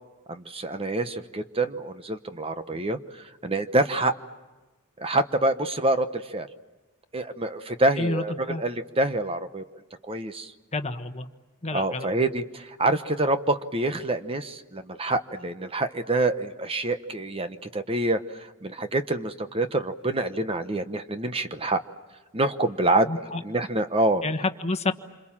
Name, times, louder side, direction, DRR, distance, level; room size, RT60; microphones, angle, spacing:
voice 1, 0.3-4.1 5.0-6.5 7.1-9.6 10.0-10.5 11.7-21.8 22.3-23.1 23.4-24.2, right 2 dB, 25° right, 9 dB, 1.0 m, -26 dB
voice 2, 8.0-8.6 10.7-11.3 11.6-12.1 23.0-23.4 24.2-24.9, left 2 dB, 30° left, 8 dB, 1.2 m, -29 dB
28.0 x 27.0 x 7.4 m, 1.2 s
head